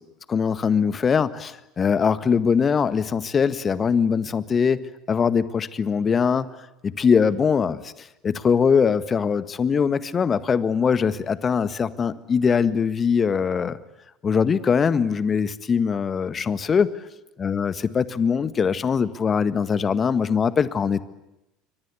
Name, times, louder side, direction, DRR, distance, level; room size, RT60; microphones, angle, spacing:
voice 1, 0.3-4.8 5.1-6.5 6.8-13.8 14.2-16.9 17.4-21.0, left 6 dB, 30° left, 14 dB, 1.7 m, -22 dB
28.5 x 24.5 x 8.5 m, 0.92 s
hypercardioid pair, 70°, 0 cm